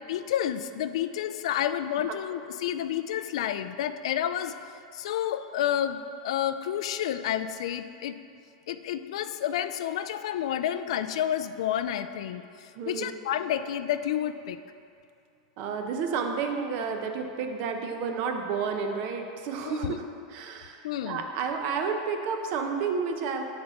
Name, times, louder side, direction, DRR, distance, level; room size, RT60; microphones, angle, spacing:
voice 1, 0.1-4.5 4.9-8.2 8.7-12.4 12.9-14.6 19.6-19.9 20.8-21.2, left 10 dB, 75° left, 11 dB, 0.3 m, -30 dB
voice 2, 12.8-13.2 15.6-23.4, right 5 dB, 55° right, 5 dB, 0.7 m, -31 dB
6.6 x 4.3 x 5.7 m, 2.5 s
supercardioid pair, 125°, 3 cm